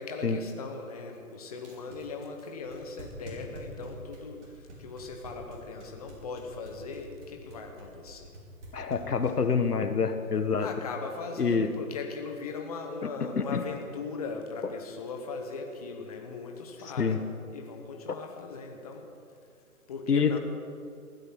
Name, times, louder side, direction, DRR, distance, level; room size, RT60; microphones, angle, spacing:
voice 1, 0.0-8.3 10.6-19.1 19.9-20.4, left 4 dB, 25° left, 3 dB, 1.2 m, -39 dB
sound 1, 1.6-9.5, right 1 dB, 50° right, 4.9 m, -46 dB
voice 2, 8.7-10.7 11.4-11.7 13.0-13.6 17.0-17.2 20.1-20.4, left 5 dB, 80° left, 9 dB, 1.4 m, -27 dB
15.5 x 12.5 x 6.3 m, 2.3 s
hypercardioid pair, 160°, 45 cm